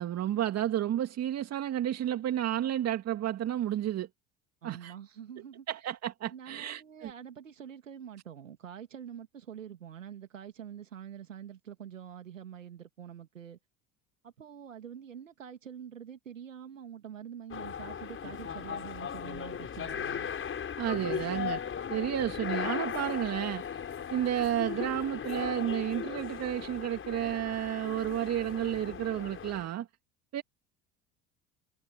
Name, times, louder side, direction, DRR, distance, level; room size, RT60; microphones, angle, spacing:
voice 1, 0.0-4.1 4.6-4.9 5.7-7.1 20.8-21.6 21.9-23.6 24.1-29.9 30.3-30.4, right 11 dB, 40° right, 2.3 m, -31 dB
voice 2, 4.6-5.7 6.3-13.6 14.2-20.3, right 9 dB, 85° right, 2.9 m, -46 dB
sound 1, 17.5-29.7, left 7 dB, 35° left, 6.6 m, -37 dB
figure-of-eight pair, 65°, 37 cm